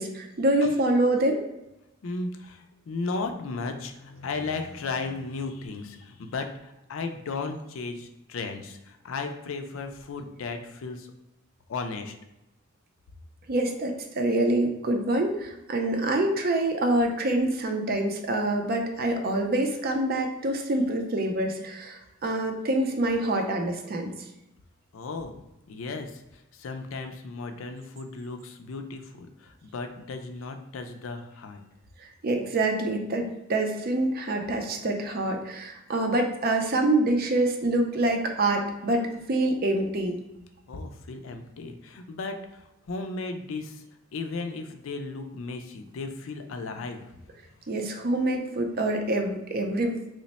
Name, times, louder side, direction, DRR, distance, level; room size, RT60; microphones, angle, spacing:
voice 1, 0.0-1.4 13.5-24.1 32.0-40.2 47.7-50.0, right 1 dB, 50° right, 3 dB, 0.5 m, -26 dB
voice 2, 2.0-11.1 11.7-12.1 24.9-25.4 25.7-31.6 40.7-43.8 44.1-47.4, left 3 dB, 80° left, 6 dB, 0.4 m, -35 dB
3.1 x 2.1 x 4.0 m, 0.92 s
head